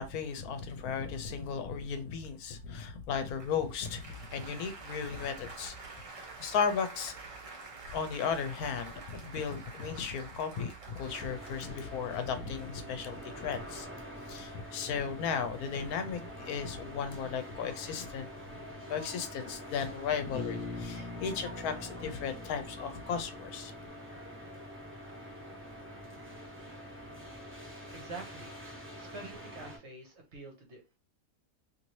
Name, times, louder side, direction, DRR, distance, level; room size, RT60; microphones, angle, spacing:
voice 1, 0.0-5.7 6.4-7.1 7.9-13.9 14.3-18.3 18.9-23.7, left 6 dB, 80° left, 1.1 m, -35 dB
Applause, 3.2-13.8, right 4 dB, 35° right, 0.5 m, -48 dB
sound 1, 11.0-29.8, equal, 10° right, 0.8 m, -46 dB
Bass guitar, 20.3-24.2, left 3 dB, 20° left, 0.8 m, -43 dB
voice 2, 27.9-28.6 28.9-31.0, right 3 dB, 55° right, 1.0 m, -46 dB
2.7 x 2.7 x 3.0 m
omnidirectional pair, 1.6 m